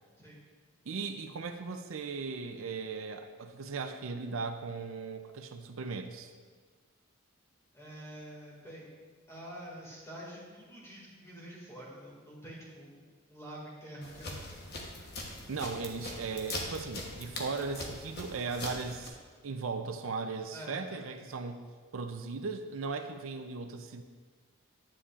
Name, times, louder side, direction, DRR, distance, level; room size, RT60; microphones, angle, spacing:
voice 1, 0.9-6.3 15.5-19.2 19.4-21.6 21.9-24.0, right 4 dB, 70° right, 6 dB, 0.5 m, -37 dB
voice 2, 7.7-8.9 9.3-14.6 20.5-21.1, right 1 dB, 15° left, -5 dB, 2.1 m, -47 dB
sound 1, 14.0-19.1, left 2 dB, 50° left, 1.1 m, -41 dB
9.9 x 8.4 x 2.5 m, 1.5 s
head